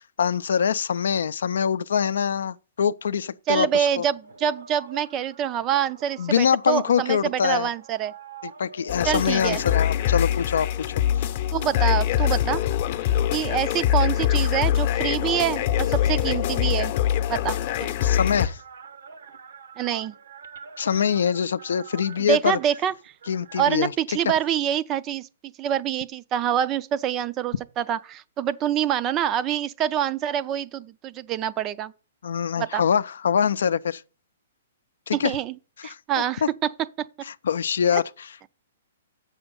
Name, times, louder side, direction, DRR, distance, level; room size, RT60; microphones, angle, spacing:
voice 1, 0.0-4.1 6.2-7.7 8.4-11.0 18.0-18.6 20.8-22.6 23.3-24.2 32.2-34.0 35.1-35.3 35.8-36.0 36.4-36.5 37.2-38.0, left 7 dB, 80° left, 0.5 m, -24 dB
voice 2, 3.5-8.1 9.0-9.6 11.5-12.6 13.3-16.9 17.3-17.9 19.8-20.1 22.2-22.9 23.6-25.3 25.6-31.9 32.6-32.8 35.2-35.5 35.8-36.4 37.9-38.0, right 9 dB, 20° right, 0.4 m, -26 dB
sound 1, 4.2-13.0 13.7-15.4 16.6-16.7 16.9-23.7, right 5 dB, 80° right, 1.1 m, -47 dB
sound 2, 8.9-18.5, left 11 dB, 40° left, 0.7 m, -23 dB
7.9 x 6.3 x 5.2 m
hypercardioid pair, 160°, 0 cm